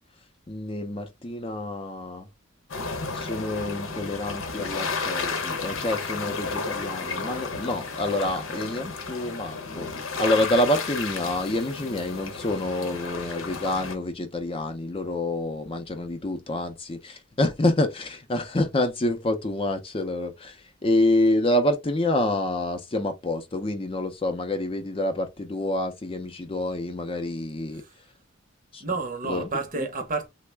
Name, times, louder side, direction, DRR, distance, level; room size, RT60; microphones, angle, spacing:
voice 1, 0.5-2.3 3.1-20.6 20.8-27.8 28.7-28.8 29.3-29.5, left 1 dB, 25° left, 0.5 m, -27 dB
sound 1, 2.7-13.9, left 4 dB, 80° left, 0.8 m, -32 dB
voice 2, 27.7-28.0 28.8-30.3, right 3 dB, 40° right, 0.7 m, -31 dB
3.4 x 2.0 x 3.2 m
head